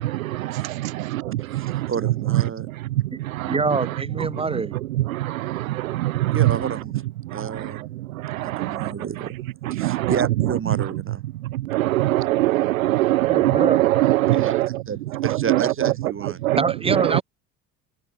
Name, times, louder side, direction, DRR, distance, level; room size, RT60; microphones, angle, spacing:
voice 1, 1.5-2.7 6.3-7.0 7.3-7.9 8.4-9.4 9.7-11.2 14.3-16.4, right 6 dB, 30° right, 5.0 m, -31 dB
voice 2, 3.5-4.8 13.3-13.8 16.6-17.2, right 3 dB, 15° right, 2.5 m, -25 dB
voice 3, 11.7-14.7 15.3-15.9 16.5-16.6 17.0-17.2, right 16 dB, 70° right, 0.7 m, -20 dB
figure-of-eight pair, 60°, 43 cm